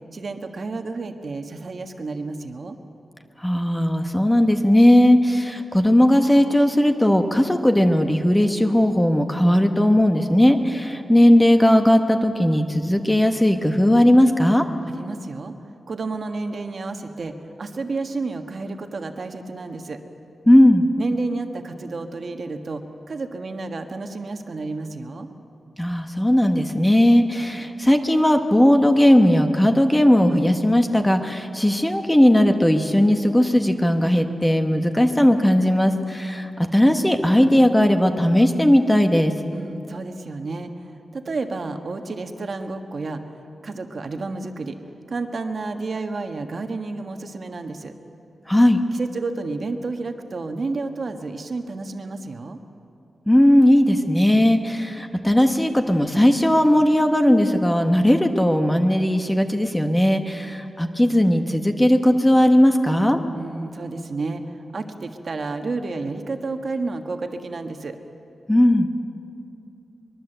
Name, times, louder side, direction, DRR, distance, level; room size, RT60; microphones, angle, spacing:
voice 1, 0.1-2.7 14.9-15.5 15.9-20.0 21.0-25.3 39.5-43.2 43.6-44.8 45.1-47.9 48.9-52.6 63.3-68.0, right 3 dB, 45° right, 6 dB, 1.4 m, -31 dB
voice 2, 3.4-14.7 20.5-20.9 25.8-39.3 48.5-48.8 53.3-63.2 68.5-68.9, left 1 dB, 10° left, 6 dB, 1.2 m, -17 dB
23.5 x 22.0 x 8.0 m, 2.7 s
wide cardioid pair, 170°, 0 cm